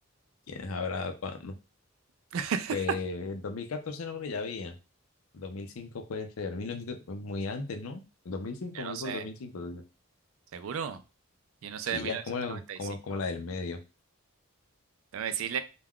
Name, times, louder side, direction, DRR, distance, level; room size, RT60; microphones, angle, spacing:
voice 1, 0.5-1.5 2.7-4.8 5.3-9.8 11.9-13.8, left 4 dB, 80° left, 7 dB, 0.5 m, -36 dB
voice 2, 2.3-2.7 8.8-9.2 10.5-11.0 11.6-12.2 12.5-12.8 15.1-15.6, right 7 dB, 75° right, 11 dB, 0.4 m, -33 dB
2.3 x 2.2 x 3.5 m, 0.30 s
head